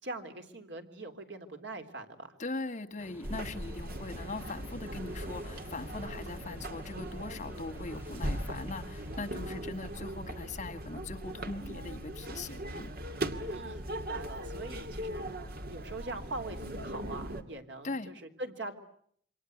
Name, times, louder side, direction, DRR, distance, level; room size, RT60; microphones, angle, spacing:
voice 1, 0.0-2.4 13.5-15.2 15.7-18.7, right 2 dB, 75° right, 6 dB, 3.5 m, -42 dB
voice 2, 2.4-12.9 17.8-18.1, left 3 dB, 40° left, 6 dB, 1.9 m, -40 dB
sound 1, 3.0-9.3, equal, 10° right, 3.3 m, -52 dB
sound 2, 3.2-17.4, right 1 dB, 55° right, 2.3 m, -39 dB
27.5 x 25.5 x 8.0 m, 0.65 s
head